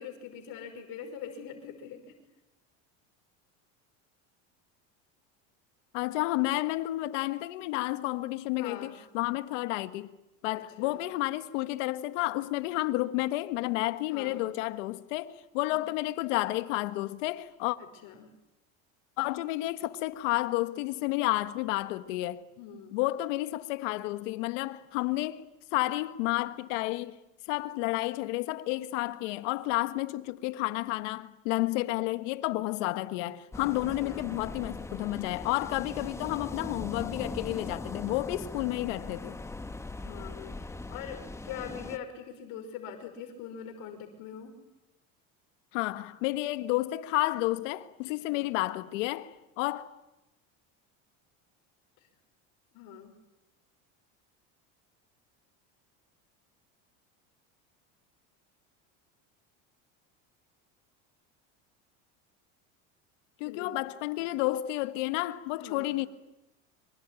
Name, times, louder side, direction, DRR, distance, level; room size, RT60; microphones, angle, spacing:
voice 1, 0.0-2.1 8.6-9.0 10.5-11.1 14.1-14.4 15.7-15.9 17.8-18.3 22.6-23.0 24.8-24.9 34.0-34.3 40.0-44.5 48.1-48.5 52.7-53.1 63.4-63.8 64.2-64.4 65.6-66.0, left 8 dB, 65° left, 5.5 m, -43 dB
voice 2, 5.9-10.1 10.4-17.8 19.2-22.4 22.9-27.2 27.5-39.4 45.7-49.9 63.4-66.1, left 18 dB, 85° left, 1.6 m, -31 dB
sound 1, 33.5-42.0, left 2 dB, 10° left, 1.1 m, -40 dB
25.5 x 24.0 x 9.0 m
supercardioid pair, 125°, 37 cm